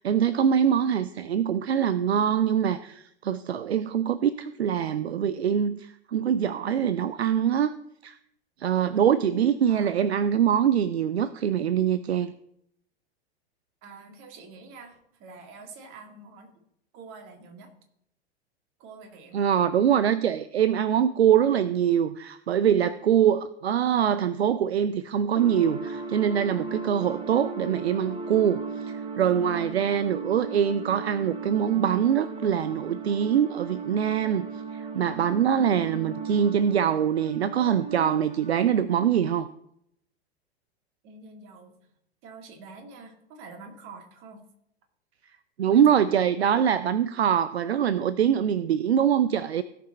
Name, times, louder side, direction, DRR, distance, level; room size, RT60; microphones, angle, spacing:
voice 1, 0.0-7.8 8.0-8.2 8.6-12.3 19.3-34.5 34.7-39.5 45.6-49.6, right 9 dB, 75° right, 0.5 m, -24 dB
voice 2, 13.8-16.6 16.9-17.7 18.8-19.4 41.0-41.9 42.2-44.4 45.7-46.1, right 4 dB, 40° right, 1.9 m, -46 dB
sound 1, 25.3-39.0, right 5 dB, 15° right, 1.1 m, -36 dB
16.5 x 5.9 x 4.2 m
figure-of-eight pair, 85°, 32 cm